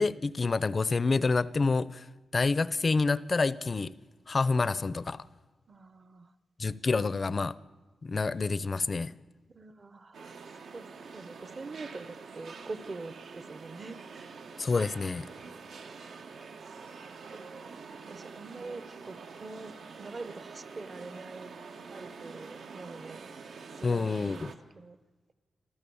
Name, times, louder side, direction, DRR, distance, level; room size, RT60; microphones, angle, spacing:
voice 1, 0.0-2.0 2.3-3.9 4.3-5.2 6.6-7.5 8.0-9.1 14.6-15.3 23.8-24.5, left 4 dB, 35° left, 18 dB, 0.6 m, -28 dB
voice 2, 5.7-6.3 9.5-10.4 10.7-10.9 11.1-14.3 16.0-16.3 17.2-21.5 21.8-23.3 23.8-25.0, right 3 dB, 35° right, 14 dB, 0.9 m, -45 dB
sound 1, 10.1-24.6, right 4 dB, 80° right, 1.7 m, -46 dB
27.0 x 14.0 x 7.0 m, 1.3 s
wide cardioid pair, 140°, 0 cm